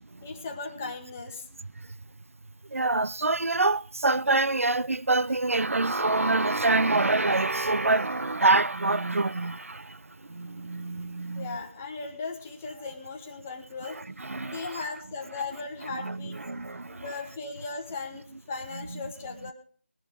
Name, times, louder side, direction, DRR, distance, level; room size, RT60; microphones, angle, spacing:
voice 1, 0.2-1.4 11.3-14.0 14.4-16.4 16.9-19.5, left 4 dB, 10° left, 0.8 m, -37 dB
voice 2, 2.7-10.0 10.3-11.6 14.2-14.6 16.0-17.0, right 2 dB, 85° right, 0.5 m, -26 dB
20.5 x 11.0 x 3.6 m
figure-of-eight pair, 175°, 7 cm